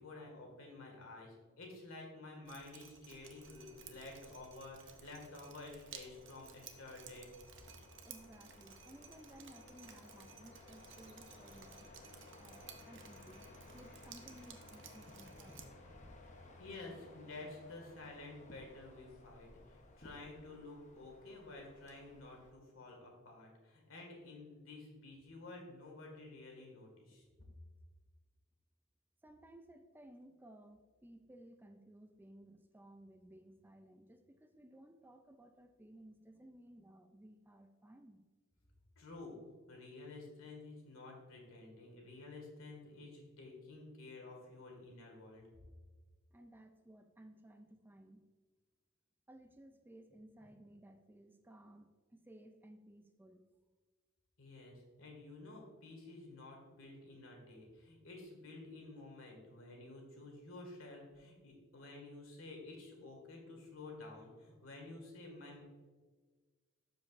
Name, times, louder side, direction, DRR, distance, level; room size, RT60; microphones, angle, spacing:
voice 1, 0.0-7.3 16.6-27.2 39.0-39.4 39.7-45.4 54.4-65.6, left 2 dB, 80° left, 1 dB, 2.0 m, -51 dB
Drip, 2.4-15.6, right 8 dB, 60° right, 0.7 m, -57 dB
sound 1, 3.1-22.5, left 2 dB, 35° left, 0.9 m, -58 dB
voice 2, 8.0-13.5 13.7-15.6 29.2-38.2 46.3-48.3 49.3-53.5, right 1 dB, 10° right, 7 dB, 0.3 m, -58 dB
12.0 x 5.2 x 2.5 m, 1.4 s
head